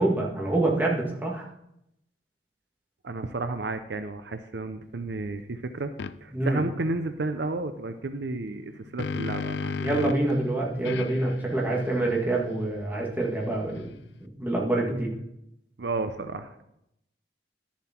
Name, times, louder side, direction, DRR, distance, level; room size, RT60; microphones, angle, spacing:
voice 1, 0.0-1.5 6.3-6.6 9.8-13.9 14.2-15.1, right 2 dB, 10° right, -3 dB, 1.9 m, -26 dB
voice 2, 3.0-5.9 6.2-9.7 15.8-16.6, right 2 dB, 70° right, 9 dB, 0.6 m, -32 dB
sound 1, 6.0-6.1 8.5-10.3 10.8-14.2, left 5 dB, 70° left, 0.4 m, -35 dB
11.0 x 7.2 x 4.4 m, 0.79 s
head